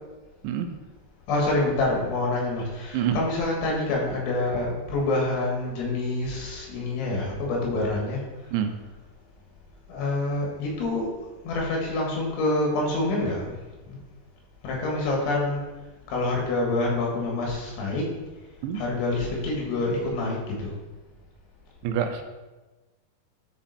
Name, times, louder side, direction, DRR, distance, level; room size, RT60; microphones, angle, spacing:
voice 1, 1.3-8.2 9.9-11.1 11.5-13.5 13.9-14.0 14.6-15.6 16.1-18.1 18.8-20.7, left 2 dB, 85° left, -2 dB, 4.2 m, -26 dB
voice 2, 2.9-3.2 8.5-8.7 18.6-18.8 21.8-22.2, right 9 dB, 85° right, 6 dB, 3.0 m, -26 dB
11.0 x 4.3 x 4.1 m, 1.2 s
omnidirectional pair, 5.2 m